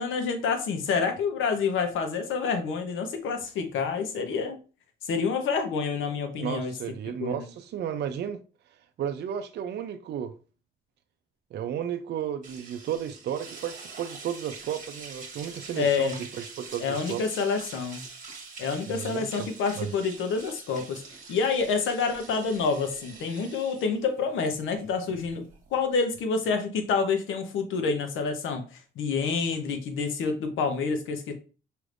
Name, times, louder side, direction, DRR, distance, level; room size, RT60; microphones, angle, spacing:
voice 1, 0.0-4.6 5.1-6.7 7.2-7.4 15.8-16.2 16.8-18.0 18.6-21.0 21.3-25.4 25.7-28.6 29.0-31.3, left 5 dB, 80° left, 0.9 m, -28 dB
voice 2, 6.4-8.4 9.0-10.4 11.5-17.2 18.9-19.5 19.8-19.9, right 9 dB, 60° right, 0.4 m, -33 dB
sound 1, 12.4-26.0, right 4 dB, 40° right, 1.2 m, -45 dB
4.9 x 3.3 x 2.5 m
cardioid pair, 90°, 20 cm